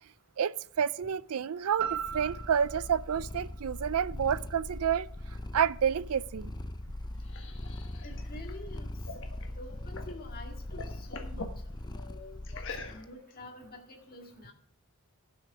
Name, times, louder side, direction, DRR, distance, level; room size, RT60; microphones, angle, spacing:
voice 1, 0.4-5.1 5.5-6.5, right 8 dB, 75° right, 0.4 m, -29 dB
Purr, 1.8-13.1, left 1 dB, 20° left, 0.5 m, -41 dB
sound 1, 1.8-5.9 6.3-6.4, right 9 dB, 45° right, 1.3 m, -41 dB
sound 2, 6.8-10.2 10.5-11.6 12.4-13.3, left 3 dB, 60° left, 1.4 m, -45 dB
voice 2, 8.0-8.9 9.4-11.4 11.9-14.5, left 2 dB, 40° left, 2.0 m, -48 dB
15.5 x 6.3 x 4.8 m
head